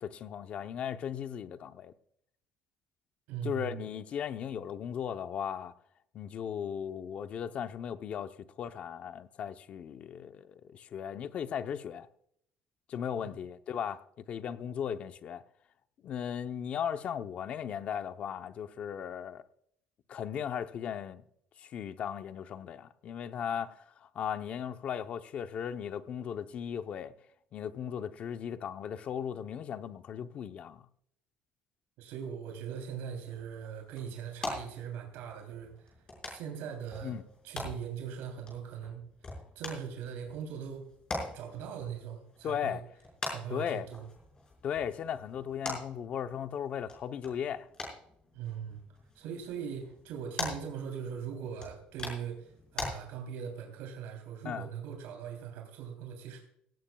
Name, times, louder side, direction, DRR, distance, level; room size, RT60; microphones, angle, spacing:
voice 1, 0.0-1.9 3.4-5.7 6.1-12.1 12.9-15.4 16.0-19.4 20.1-21.2 21.6-27.1 27.5-30.8 37.0-37.2 42.4-42.8 43.5-43.9 44.6-47.7 54.4-54.7, left 8 dB, 40° left, 0.7 m, -37 dB
voice 2, 3.3-3.8 32.0-35.9 36.3-37.2 37.4-39.0 39.5-40.9 41.3-42.8 43.2-44.0 48.3-48.8 49.1-56.4, right 8 dB, 90° right, 3.2 m, -40 dB
sound 1, 33.1-52.9, left 2 dB, 25° left, 5.3 m, -44 dB
17.0 x 16.0 x 2.3 m
cardioid pair, 170°, 3 cm